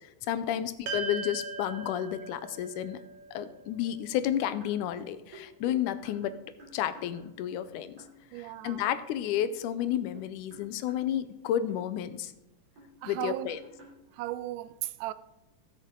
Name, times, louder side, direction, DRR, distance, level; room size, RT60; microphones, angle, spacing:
voice 1, 0.3-3.0 3.3-6.4 6.7-8.0 8.4-12.3 13.1-13.6, left 11 dB, 85° left, 2.1 m, -31 dB
sound 1, 0.9-5.3, right 3 dB, 60° right, 2.0 m, -40 dB
sound 2, 4.4-7.6 8.0-8.2 8.7-8.8 9.4-11.1 11.7-11.8 12.8-14.0, right 1 dB, 40° right, 4.0 m, -52 dB
voice 2, 8.3-8.9 13.0-13.6 14.1-15.1, right 15 dB, 90° right, 2.1 m, -36 dB
15.5 x 6.6 x 3.7 m
omnidirectional pair, 3.5 m